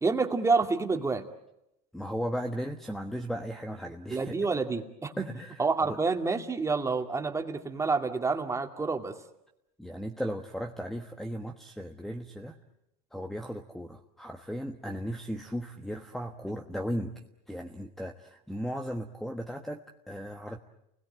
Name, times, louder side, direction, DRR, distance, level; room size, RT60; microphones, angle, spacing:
voice 1, 0.0-1.3 4.1-5.2 5.6-9.2, right 4 dB, 15° right, 5 dB, 2.3 m, -28 dB
voice 2, 1.9-4.3 5.2-6.0 9.8-12.6 13.1-20.6, equal, ahead, 6 dB, 1.3 m, -36 dB
30.0 x 20.5 x 9.0 m, 0.86 s
supercardioid pair, 120°, 20 cm